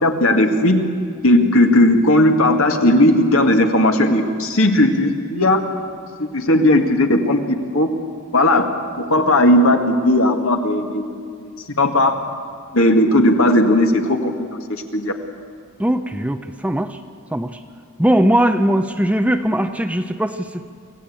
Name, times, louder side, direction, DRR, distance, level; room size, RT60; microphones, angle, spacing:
voice 1, 0.0-0.8 1.2-5.6 6.2-7.4 7.7-7.9 8.3-8.7 9.0-11.2 11.8-12.1 12.7-14.3 14.7-15.1, left 1 dB, 70° left, 4 dB, 2.0 m, -16 dB
voice 2, 15.8-17.0 17.3-17.6 18.0-20.7, right 1 dB, 5° right, 8 dB, 0.6 m, -19 dB
24.5 x 16.5 x 8.7 m, 2.3 s
head